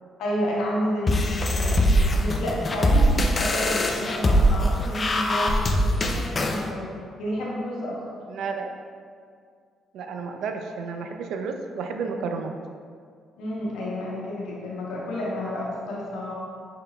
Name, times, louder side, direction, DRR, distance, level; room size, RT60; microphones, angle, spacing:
voice 1, 0.2-8.0 13.4-16.3, left 1 dB, 90° left, -5 dB, 0.8 m, -30 dB
sound 1, 1.1-6.6, equal, 35° left, 0.4 m, -22 dB
voice 2, 8.3-8.7 9.9-12.5, right 5 dB, 75° right, 5 dB, 0.4 m, -31 dB
5.5 x 3.7 x 2.2 m, 2.1 s
cardioid pair, 90°, 0 cm